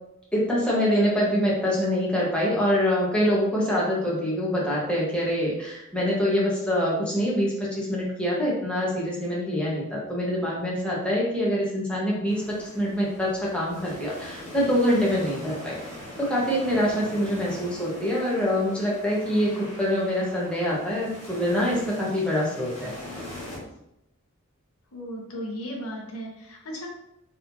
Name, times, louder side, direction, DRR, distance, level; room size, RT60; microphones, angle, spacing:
voice 1, 0.3-15.8 16.2-22.9, equal, 5° left, -6 dB, 1.3 m, -25 dB
sound 1, 12.3-23.6, left 1 dB, 30° left, 1.5 m, -42 dB
voice 2, 24.9-26.9, equal, 75° left, 0 dB, 1.0 m, -35 dB
4.0 x 3.9 x 2.7 m, 0.82 s
head